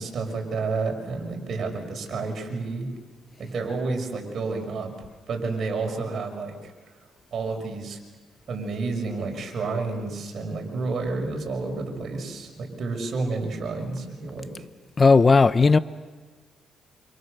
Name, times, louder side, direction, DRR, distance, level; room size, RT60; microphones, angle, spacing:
voice 1, 0.0-2.9 3.4-6.7 7.3-8.0 8.5-14.5, right 3 dB, 55° right, 6.4 m, -30 dB
voice 2, 15.0-15.8, left 4 dB, 30° left, 0.8 m, -15 dB
28.0 x 27.5 x 6.8 m
cardioid pair, 90°, 0 cm